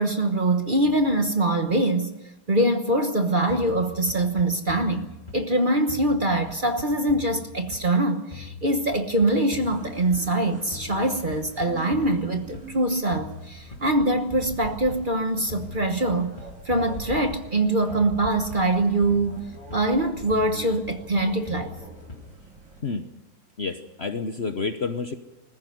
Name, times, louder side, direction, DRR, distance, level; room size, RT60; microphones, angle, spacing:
voice 1, 0.0-2.2 2.5-16.4 16.6-19.4 19.7-21.7, right 1 dB, 30° right, 6 dB, 1.2 m, -23 dB
sound 1, 3.5-5.6 5.9-8.0 8.3-10.4 10.7-12.8 13.1-15.1 15.5-17.6 17.9-20.0 20.3-22.4, left 4 dB, 25° left, 2.8 m, -42 dB
sound 2, 9.6-22.8, right 2 dB, 50° right, 5.4 m, -43 dB
voice 2, 23.6-25.2, left 4 dB, 45° left, 8 dB, 1.1 m, -29 dB
20.5 x 15.0 x 9.4 m, 1.0 s
omnidirectional pair, 1.9 m